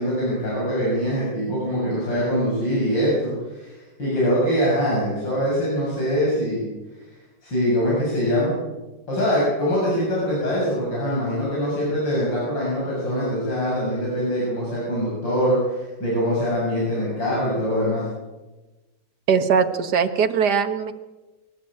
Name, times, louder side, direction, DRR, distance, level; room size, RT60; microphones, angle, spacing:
voice 1, 0.0-6.7 7.4-8.5 9.1-18.0, equal, 80° left, -6 dB, 8.1 m, -23 dB
voice 2, 19.3-20.9, right 6 dB, 65° right, 7 dB, 2.0 m, -20 dB
24.5 x 14.5 x 8.9 m, 1.1 s
omnidirectional pair, 2.0 m